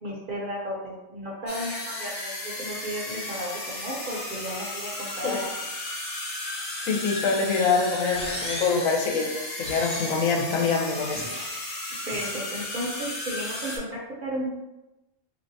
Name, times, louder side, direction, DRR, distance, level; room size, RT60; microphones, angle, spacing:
voice 1, 0.0-5.5 12.0-14.5, equal, 50° right, -3 dB, 0.7 m, -34 dB
sound 1, 1.5-13.8, left 1 dB, 55° left, 1.0 m, -35 dB
voice 2, 6.8-9.3 9.6-11.2, left 5 dB, 90° left, 0 dB, 1.1 m, -25 dB
sound 2, 8.1-8.9 9.6-10.4 11.1-11.6 12.1-12.5, equal, 10° left, 0.4 m, -36 dB
3.3 x 2.7 x 2.6 m, 0.97 s
omnidirectional pair, 1.4 m